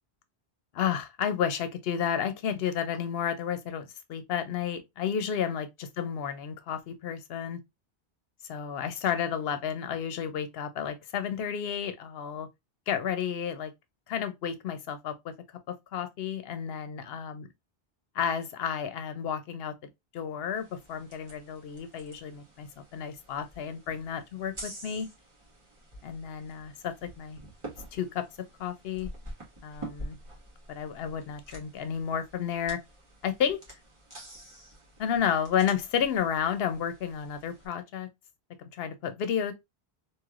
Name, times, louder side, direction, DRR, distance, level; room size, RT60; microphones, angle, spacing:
voice 1, 0.7-7.6 8.5-12.5 12.9-13.7 14.1-15.3 15.7-17.4 18.1-19.7 20.1-25.1 26.0-27.4 27.9-28.2 28.6-29.1 29.6-30.2 30.7-32.8 33.2-33.6 35.0-38.1 38.6-39.5, left 8 dB, 75° left, 0.8 m, -31 dB
sound 1, 20.5-37.7, right 1 dB, 30° right, 1.2 m, -48 dB
3.1 x 2.8 x 2.4 m
omnidirectional pair, 1.1 m